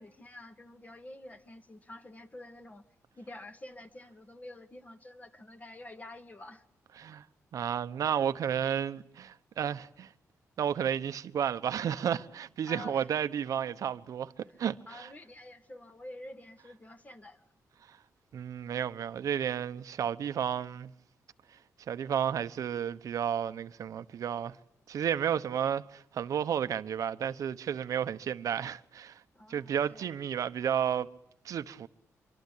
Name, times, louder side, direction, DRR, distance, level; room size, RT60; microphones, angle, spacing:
voice 1, 0.0-2.8 3.2-6.6 12.6-13.1 14.5-17.4 29.3-30.1, left 1 dB, 25° left, 2.2 m, -48 dB
voice 2, 7.5-10.1 10.6-14.3 14.6-15.1 18.3-20.9 21.9-24.5 24.9-29.2 29.5-31.1 31.4-31.9, right 8 dB, 75° right, 1.0 m, -32 dB
25.5 x 24.5 x 8.6 m
cardioid pair, 85°, 6 cm